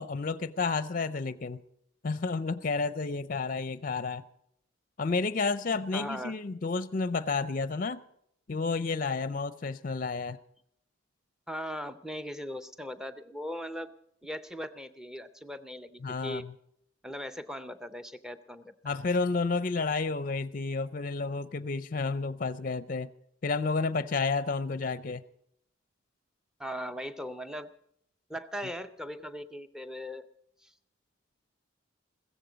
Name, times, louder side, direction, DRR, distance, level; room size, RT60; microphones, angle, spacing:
voice 1, 0.0-1.6 2.0-4.2 5.0-8.1 8.5-10.4 16.0-16.5 18.8-23.1 23.4-25.2, left 4 dB, 40° left, 0.5 m, -31 dB
voice 2, 5.9-6.4 11.5-13.9 14.2-16.5 17.0-18.7 26.6-27.7 28.3-30.3 30.6-30.7, equal, 5° right, 0.6 m, -39 dB
15.5 x 15.0 x 5.0 m
head